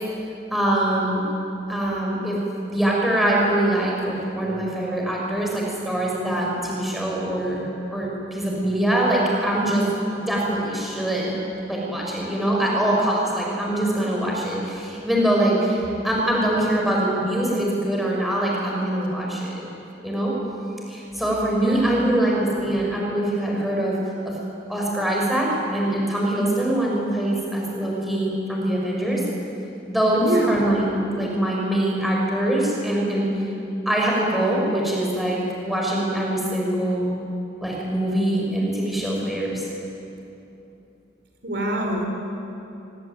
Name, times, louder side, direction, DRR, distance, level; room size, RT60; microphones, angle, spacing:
voice 1, 0.5-1.2 1.7-2.4 2.7-9.9 10.1-11.3 11.7-19.7 20.0-20.3 20.9-24.0 24.2-24.4 24.7-29.2 29.8-33.3 33.8-37.1 37.6-39.6, right 1 dB, ahead, -3 dB, 6.6 m, -23 dB
voice 2, 21.6-22.2 30.1-30.6 41.4-42.1, right 1 dB, 70° right, 1 dB, 5.0 m, -25 dB
25.0 x 24.5 x 9.4 m, 2.8 s
head